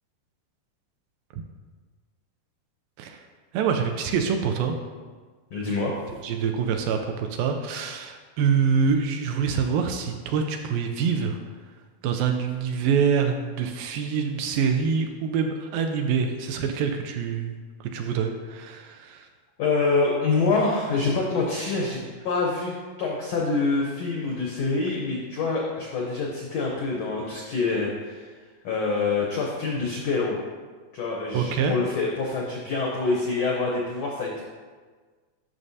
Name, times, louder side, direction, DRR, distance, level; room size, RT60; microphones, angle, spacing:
voice 1, 3.5-4.8 6.2-11.4 12.0-19.3 31.3-31.8, right 6 dB, 80° right, 5 dB, 2.1 m, -25 dB
voice 2, 5.5-6.0 19.6-28.3 28.6-30.4 30.9-34.4, left 3 dB, 90° left, -2 dB, 1.4 m, -26 dB
11.0 x 6.3 x 2.7 m, 1.4 s
omnidirectional pair, 4.3 m